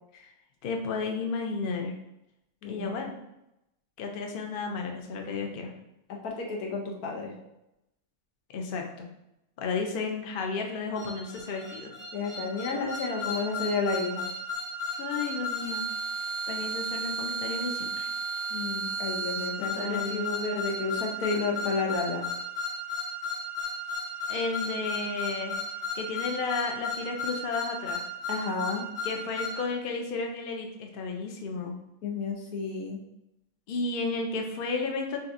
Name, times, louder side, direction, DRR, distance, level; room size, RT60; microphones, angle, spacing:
voice 1, 0.6-1.9 2.7-3.1 4.0-5.7 8.5-9.1 9.6-11.9 15.0-15.9 16.2-18.1 19.6-20.3 24.3-25.6 25.9-28.0 29.0-31.7 33.7-35.2, left 4 dB, 55° left, 2 dB, 0.6 m, -33 dB
voice 2, 2.6-3.1 6.2-7.3 12.1-14.3 18.5-22.2 28.3-28.9 32.0-33.0, left 4 dB, 85° left, -1 dB, 1.4 m, -31 dB
sound 1, 11.0-29.6, equal, 25° left, 0.9 m, -34 dB
6.7 x 2.7 x 2.6 m, 0.87 s
omnidirectional pair, 1.5 m